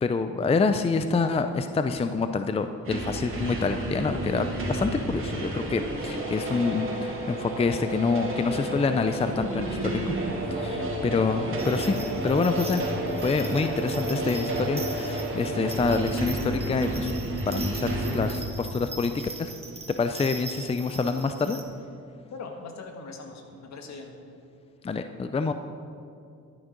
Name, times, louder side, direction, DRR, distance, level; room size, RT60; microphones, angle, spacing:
voice 1, 0.0-10.2 10.5-12.8 13.2-17.1 17.5-19.1 19.4-19.5 20.0-21.6 24.8-25.5, left 4 dB, 20° left, 9 dB, 0.5 m, -27 dB
sound 1, 2.8-18.3, right 1 dB, 45° right, 2.9 m, -31 dB
sound 2, 11.6-21.6, right 3 dB, 20° right, 1.4 m, -42 dB
voice 2, 22.3-24.1, left 4 dB, 60° left, 4 dB, 1.7 m, -41 dB
11.5 x 10.0 x 5.2 m, 2.5 s
cardioid pair, 90°, 30 cm